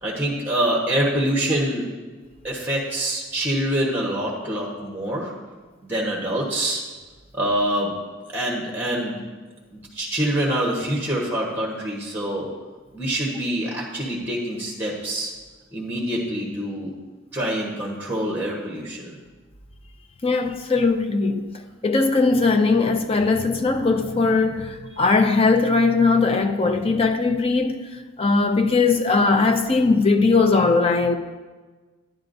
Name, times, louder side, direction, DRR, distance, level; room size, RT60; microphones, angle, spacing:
voice 1, 0.0-1.8 2.4-5.3 5.8-6.8 7.3-8.0 8.3-9.2 9.7-12.5 12.9-15.3 15.7-16.9 17.3-19.2, right 1 dB, 10° right, 1.1 m, -25 dB
voice 2, 20.2-21.5 21.8-27.8 28.2-31.2, left 3 dB, 30° left, 0.5 m, -19 dB
10.5 x 10.5 x 2.6 m
head